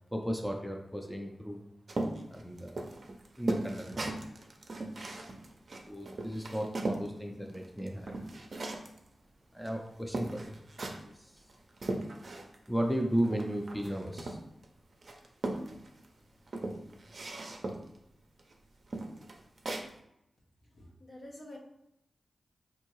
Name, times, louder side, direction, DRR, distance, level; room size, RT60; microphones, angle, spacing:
voice 1, 0.1-1.6 2.3-2.8 3.4-4.1 5.9-8.1 9.5-10.6 11.0-11.5 12.7-14.4, equal, ahead, 1 dB, 0.5 m, -35 dB
sound 1, 1.9-7.1 7.5-9.0 9.7-9.8 10.1-11.1 11.5-12.7 12.9-14.6 15.0-16.1 16.5-18.0 18.4-18.5 18.9-19.9, right 2 dB, 55° right, 0.5 m, -37 dB
voice 2, 20.6-21.6, left 1 dB, 60° left, -2 dB, 0.9 m, -48 dB
3.6 x 2.7 x 3.0 m, 0.79 s
cardioid pair, 60°, 0 cm